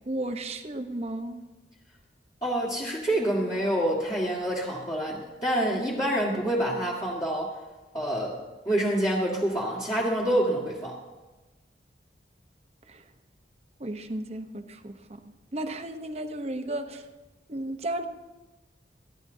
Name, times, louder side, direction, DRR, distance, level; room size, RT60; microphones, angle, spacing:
voice 1, 0.1-1.4 13.8-15.2 15.5-17.0 17.5-18.1, right 1 dB, 35° right, 7 dB, 0.9 m, -34 dB
voice 2, 2.4-7.5 7.9-8.4 8.6-11.0, right 1 dB, 20° left, -7 dB, 1.8 m, -27 dB
29.0 x 10.5 x 2.8 m, 1.2 s
head